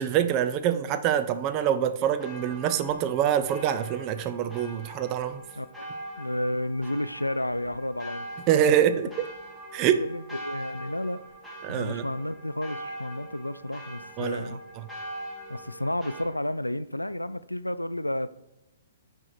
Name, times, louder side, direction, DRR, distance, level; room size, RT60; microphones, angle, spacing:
voice 1, 0.0-5.4 8.5-9.3 9.7-10.0 11.6-12.0 14.2-14.5 14.8-14.9, right 9 dB, 30° right, 0.5 m, -25 dB
sound 1, 2.0-16.2, right 1 dB, ahead, 1.3 m, -42 dB
voice 2, 5.6-5.9 6.2-8.3 10.1-11.2 11.7-14.6 15.5-18.3, left 1 dB, 85° left, 0.3 m, -31 dB
6.2 x 4.5 x 4.1 m
figure-of-eight pair, 120°, 0 cm